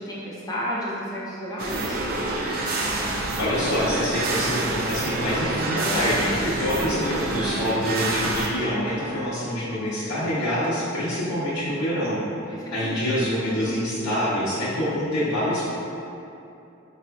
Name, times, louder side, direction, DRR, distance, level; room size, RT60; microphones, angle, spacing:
voice 1, 0.0-2.0 12.8-13.3, equal, 20° left, -6 dB, 0.5 m, -31 dB
sound 1, 1.6-8.5, right 2 dB, 45° right, 0.4 m, -27 dB
voice 2, 3.3-12.2 12.5-15.7, equal, 85° left, -13 dB, 0.7 m, -26 dB
4.8 x 2.4 x 2.2 m, 2.7 s
head